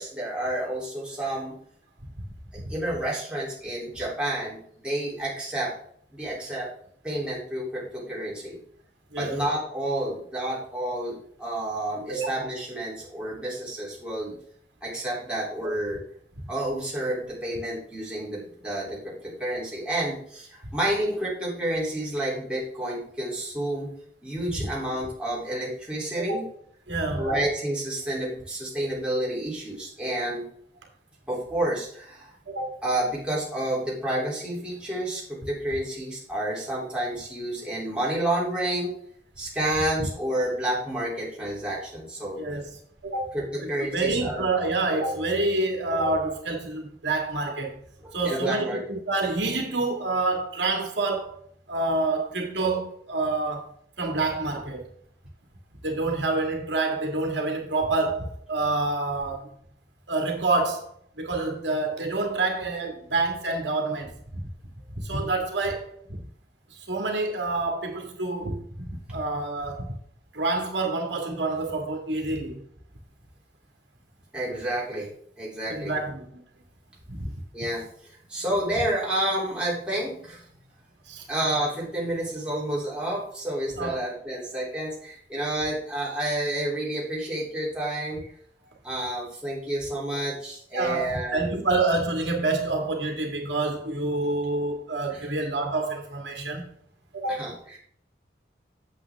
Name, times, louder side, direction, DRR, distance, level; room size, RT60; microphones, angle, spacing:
voice 1, 0.0-1.5 2.5-5.8 6.1-6.7 7.0-8.6 9.2-14.4 14.8-16.0 16.5-23.9 24.2-26.4 27.1-30.5 31.3-32.3 32.8-39.0 39.4-42.4 43.3-44.4 48.0-48.8 74.3-75.1 75.4-75.9 77.5-80.4 81.3-88.3 88.8-91.6 95.1-95.3 97.4-97.8, right 1 dB, 5° right, 3.0 m, -30 dB
voice 2, 9.1-9.4 12.1-12.4 24.6-24.7 26.3-26.4 26.9-27.4 32.5-32.7 42.4-43.3 43.6-47.8 48.1-51.4 51.7-53.6 54.0-54.9 55.8-59.5 60.1-60.8 61.2-64.5 64.9-66.2 66.7-69.9 70.3-72.6 75.7-76.3 77.1-77.3 81.0-81.3 83.7-84.0 90.7-96.7 97.1-97.4, right 2 dB, 80° right, 1.9 m, -27 dB
8.4 x 7.5 x 3.5 m
head